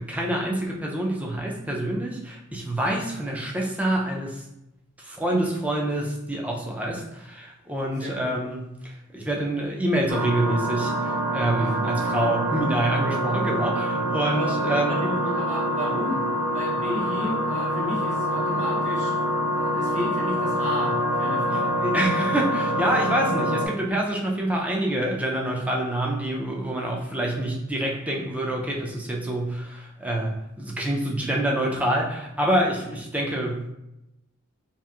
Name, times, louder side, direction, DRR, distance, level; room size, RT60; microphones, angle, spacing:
voice 1, 0.0-4.4 5.0-15.0 21.5-30.3 30.6-33.7, right 1 dB, 5° right, -1 dB, 0.3 m, -26 dB
voice 2, 8.0-8.3 11.6-12.0 14.3-14.6 14.9-16.2 16.5-19.2 19.5-21.7, equal, 35° right, -5 dB, 0.8 m, -32 dB
sound 1, 10.1-23.7, equal, 65° right, 0.5 m, -26 dB
2.8 x 2.4 x 2.3 m, 0.89 s
head